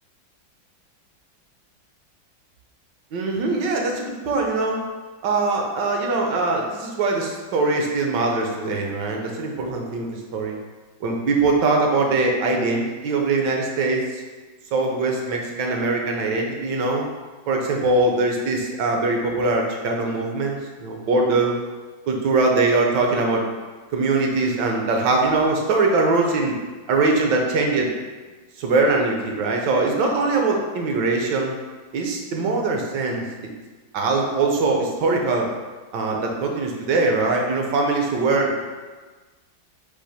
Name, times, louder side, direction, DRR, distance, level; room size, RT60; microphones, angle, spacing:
voice 1, 3.1-4.8 5.2-10.6 11.0-14.2 14.7-17.1 17.5-21.6 22.1-23.4 23.9-26.6 26.9-27.9 28.6-31.6 31.9-33.3 33.9-35.5 35.9-38.6, right 3 dB, 70° right, 1 dB, 1.2 m, -22 dB
4.8 x 2.5 x 4.1 m, 1.3 s
omnidirectional pair, 2.1 m